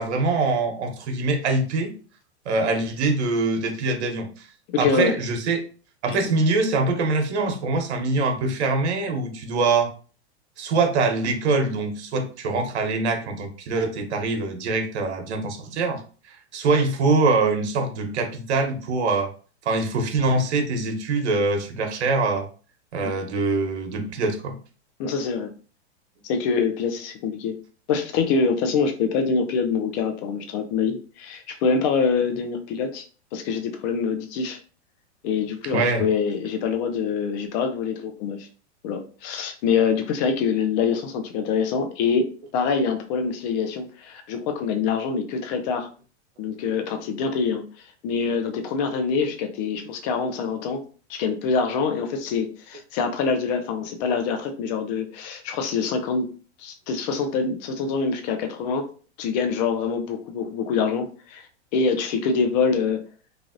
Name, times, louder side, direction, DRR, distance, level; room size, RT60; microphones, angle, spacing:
voice 1, 0.0-1.9 2.4-4.5 4.8-5.6 6.0-9.9 10.6-16.0 16.3-19.3 19.6-22.5 22.9-24.6 35.7-36.1 48.2-48.3 50.4-50.5, right 3 dB, 75° right, 5 dB, 0.9 m, -24 dB
voice 2, 4.7-5.2 6.1-6.3 23.0-23.1 25.0-25.5 26.2-27.6 27.9-33.0 33.3-34.6 35.2-38.5 38.8-45.9 46.4-47.6 48.0-50.8 51.1-56.3 56.6-58.9 59.2-61.5 61.7-63.0, left 5 dB, 40° left, 6 dB, 0.6 m, -25 dB
3.3 x 2.4 x 2.5 m, 0.39 s
hypercardioid pair, 140°, 34 cm